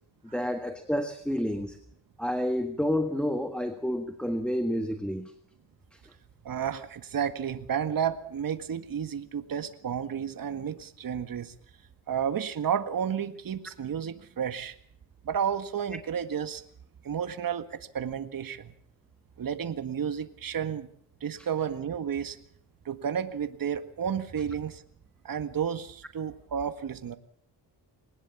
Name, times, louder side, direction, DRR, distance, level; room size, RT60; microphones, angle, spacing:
voice 1, 0.3-1.8 2.2-5.3, equal, ahead, 6 dB, 1.6 m, -29 dB
voice 2, 6.4-11.5 12.1-14.7 15.2-16.6 17.0-18.7 19.4-20.9 21.2-22.4 22.8-24.8 25.2-27.2, right 8 dB, 50° right, 10 dB, 1.8 m, -31 dB
21.5 x 19.5 x 7.3 m, 0.62 s
cardioid pair, 110°, 43 cm